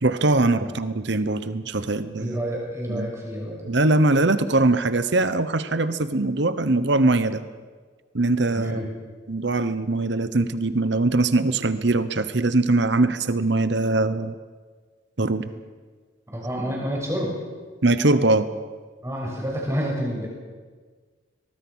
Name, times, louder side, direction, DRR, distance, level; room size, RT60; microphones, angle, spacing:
voice 1, 0.0-2.4 2.9-3.1 3.6-7.4 8.1-8.8 9.3-14.3 15.2-15.4 17.8-18.5, right 2 dB, 60° right, 13 dB, 1.0 m, -21 dB
voice 2, 2.2-3.6 8.5-8.9 16.3-17.4 19.0-20.3, equal, 15° right, -2 dB, 6.5 m, -29 dB
23.0 x 21.0 x 6.3 m, 1.5 s
head